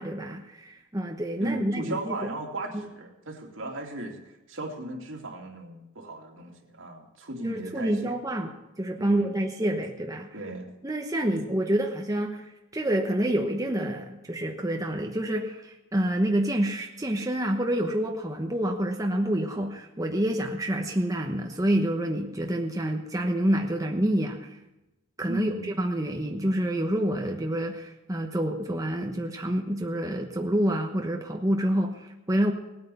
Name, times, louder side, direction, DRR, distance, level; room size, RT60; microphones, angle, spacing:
voice 1, 0.0-2.2 7.4-10.3 10.8-24.5 25.2-32.5, right 1 dB, 15° right, 2 dB, 1.0 m, -28 dB
voice 2, 1.4-4.2 4.5-8.2 9.0-9.4 10.3-10.7 25.3-25.7, right 2 dB, 65° right, 1 dB, 2.7 m, -36 dB
19.0 x 9.4 x 7.0 m, 1.0 s
head